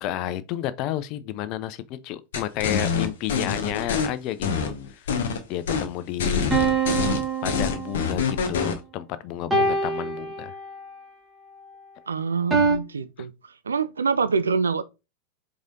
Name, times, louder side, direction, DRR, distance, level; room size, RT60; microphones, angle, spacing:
voice 1, 0.0-5.1 5.5-6.6 7.4-10.5, left 12 dB, 40° left, 0.4 m, -31 dB
sound 1, 2.3-4.1 4.4-5.4 5.7-5.9 6.2-8.8, left 5 dB, 60° left, 0.9 m, -25 dB
sound 2, 6.5-8.3 9.5-10.9 12.5-12.8, right 4 dB, 10° right, 1.2 m, -24 dB
voice 2, 12.1-13.3 13.6-14.8, right 5 dB, 70° right, 0.4 m, -25 dB
4.8 x 3.7 x 2.7 m
figure-of-eight pair, 90°, 0 cm